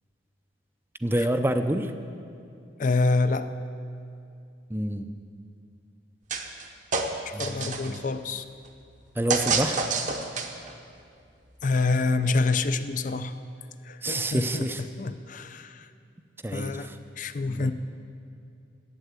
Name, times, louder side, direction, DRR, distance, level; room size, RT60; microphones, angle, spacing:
voice 1, 1.0-1.9 4.7-5.1 7.3-8.0 9.1-9.9 14.0-14.8 16.4-17.0 17.5-17.7, right 1 dB, 10° right, 8 dB, 0.5 m, -28 dB
voice 2, 2.8-3.5 7.3-8.4 11.6-13.3 13.8-14.7 15.0-15.9 16.5-16.9 17.2-17.7, left 3 dB, 40° left, 11 dB, 0.4 m, -26 dB
sound 1, 6.3-6.6 6.9-8.0 9.3-10.7, right 4 dB, 40° right, 0.8 m, -28 dB
11.5 x 8.4 x 8.2 m, 2.5 s
head